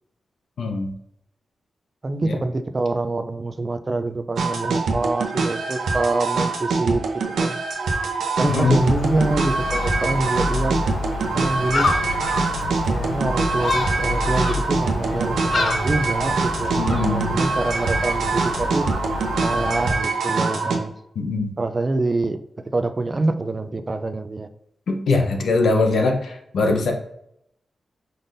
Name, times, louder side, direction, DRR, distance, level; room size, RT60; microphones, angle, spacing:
voice 1, 0.6-0.9 2.2-2.3 8.4-8.8 16.8-17.4 21.2-21.5 24.9-26.9, left 3 dB, 80° left, 3 dB, 0.8 m, -22 dB
voice 2, 2.0-7.0 7.4-7.6 8.4-10.8 11.3-11.9 12.9-18.9 19.4-20.9 21.6-24.5, right 2 dB, 30° right, 9 dB, 0.4 m, -25 dB
sound 1, 4.4-20.8, right 4 dB, 90° right, 0.7 m, -24 dB
Gull seagull, 8.5-19.9, left 3 dB, 50° left, 0.4 m, -28 dB
5.2 x 3.8 x 2.6 m, 0.76 s
wide cardioid pair, 110°, 0 cm